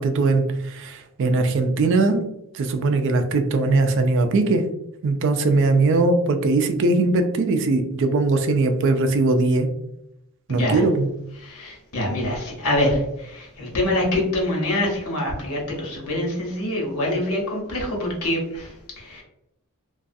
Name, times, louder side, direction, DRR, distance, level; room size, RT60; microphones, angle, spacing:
voice 1, 0.0-4.7 5.0-9.7 10.5-11.1, right 3 dB, 55° right, 7 dB, 0.4 m, -20 dB
voice 2, 10.5-10.8 11.4-19.2, left 1 dB, 85° left, -1 dB, 1.0 m, -25 dB
2.4 x 2.3 x 2.5 m, 0.82 s
head